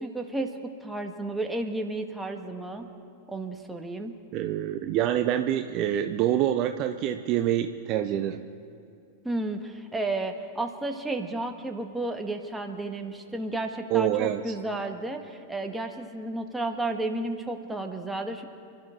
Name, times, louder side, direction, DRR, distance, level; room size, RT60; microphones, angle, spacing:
voice 1, 0.0-2.9 3.3-4.1 9.2-18.5, right 2 dB, 5° right, 4 dB, 1.5 m, -32 dB
voice 2, 4.3-8.4 13.9-14.4, right 11 dB, 40° right, 8 dB, 0.7 m, -26 dB
28.5 x 12.5 x 3.8 m, 2.6 s
figure-of-eight pair, 90°, 0 cm